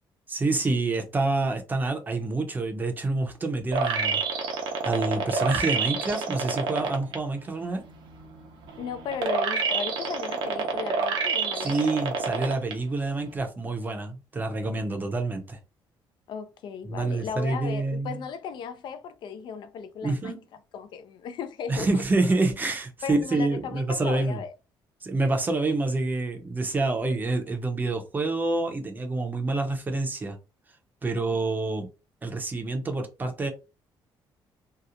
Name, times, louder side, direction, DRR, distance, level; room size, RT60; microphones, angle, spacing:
voice 1, 0.3-4.2 4.8-7.9 11.6-15.6 16.8-18.2 20.0-20.4 21.7-24.4 25.0-30.4 31.0-31.9 32.2-33.5, right 2 dB, 20° right, 0.6 m, -27 dB
sound 1, 3.7-7.2 7.6-12.7 13.2-13.3, right 5 dB, 65° right, 0.6 m, -28 dB
voice 2, 8.8-11.9 16.3-20.3 20.7-22.0 23.0-24.5 31.3-31.4, left 6 dB, 60° left, 0.3 m, -36 dB
2.8 x 2.0 x 2.4 m
cardioid pair, 135°, 9 cm